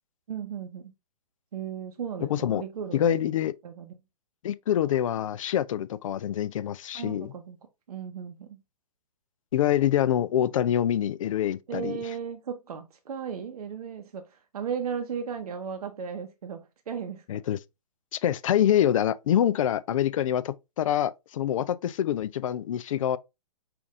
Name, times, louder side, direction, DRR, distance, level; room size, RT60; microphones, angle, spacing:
voice 1, 0.3-0.9 1.5-3.2 3.6-4.0 6.9-7.6 7.9-8.6 11.7-17.2, right 7 dB, 70° right, 0.8 m, -36 dB
voice 2, 2.3-2.6 2.9-3.5 4.4-7.3 9.5-11.9 17.3-17.6 18.1-23.2, left 10 dB, 55° left, 0.4 m, -25 dB
5.7 x 2.6 x 3.5 m
hypercardioid pair, 140°, 20 cm